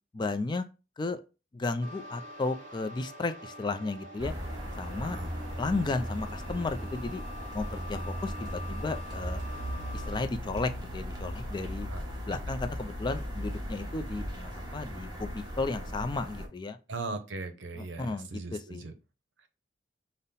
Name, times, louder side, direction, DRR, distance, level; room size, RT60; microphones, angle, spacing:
voice 1, 0.1-0.6 1.0-1.2 1.5-4.3 4.8-5.2 5.6-7.2 7.5-9.4 9.9-11.9 12.3-16.8 17.7-18.8, left 3 dB, 25° left, 0.3 m, -34 dB
sound 1, 1.8-10.2, left 1 dB, 45° right, 0.8 m, -46 dB
sound 2, 4.2-16.5, equal, 20° right, 1.1 m, -37 dB
voice 2, 16.9-18.9, right 3 dB, 75° right, 0.7 m, -38 dB
5.4 x 2.1 x 4.0 m
head